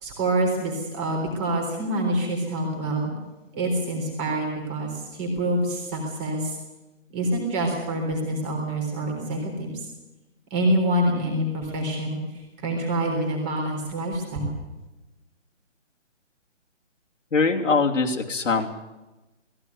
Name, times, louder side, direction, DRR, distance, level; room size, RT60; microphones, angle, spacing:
voice 1, 0.0-3.1 3.5-6.5 7.1-9.9 10.5-12.2 12.6-14.6, right 1 dB, 15° right, 1 dB, 3.7 m, -26 dB
voice 2, 17.3-18.7, left 4 dB, 80° left, 1 dB, 3.1 m, -22 dB
18.0 x 16.5 x 9.5 m, 1.1 s
hypercardioid pair, 170°, 37 cm